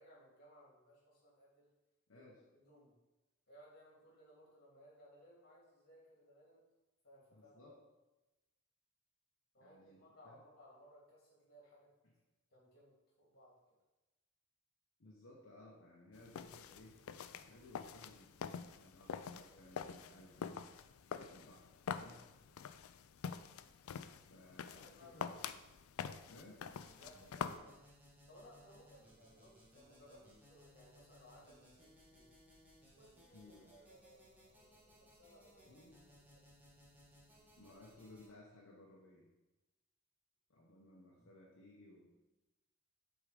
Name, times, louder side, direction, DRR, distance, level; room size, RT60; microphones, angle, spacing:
voice 1, 0.0-1.7 2.1-3.0 3.5-6.6 7.0-7.8 9.5-11.9 12.5-13.7 24.6-25.3 27.0-28.0 28.3-32.3 32.9-35.8 36.2-36.4 41.1-41.3, equal, 50° left, -4 dB, 2.6 m, -62 dB
voice 2, 2.1-2.4 7.3-7.8 9.6-10.4 15.0-17.0 17.3-18.3 18.7-20.7 21.1-22.3 24.2-25.4 26.3-26.7 33.3-33.7 35.7-36.0 37.6-39.3 40.5-42.2, left 1 dB, 65° left, -2 dB, 1.0 m, -60 dB
sound 1, 16.1-27.6, left 7 dB, 80° left, 0.4 m, -46 dB
sound 2, 26.7-38.3, equal, 10° right, 1.7 m, -64 dB
7.9 x 3.7 x 5.0 m, 1.1 s
head